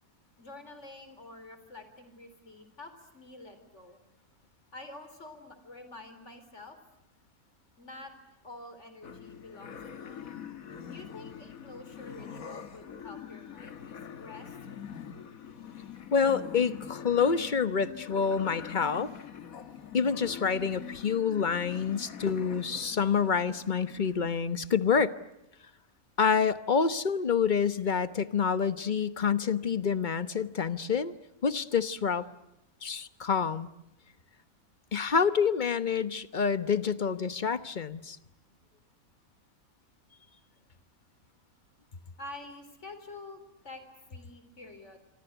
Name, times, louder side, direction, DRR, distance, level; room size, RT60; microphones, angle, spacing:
voice 1, 0.4-4.0 4.7-6.8 7.8-8.1 8.4-10.2 10.9-14.6 42.2-43.8 44.1-45.0, left 2 dB, 50° left, 10 dB, 4.1 m, -48 dB
sound 1, 9.0-24.3, left 8 dB, 70° left, 1.8 m, -44 dB
voice 2, 16.1-19.1 19.9-25.1 26.2-31.1 31.4-32.3 32.8-33.7 34.9-38.2, left 6 dB, 35° left, 14 dB, 1.1 m, -27 dB
27.0 x 25.0 x 8.0 m, 0.91 s
omnidirectional pair, 1.5 m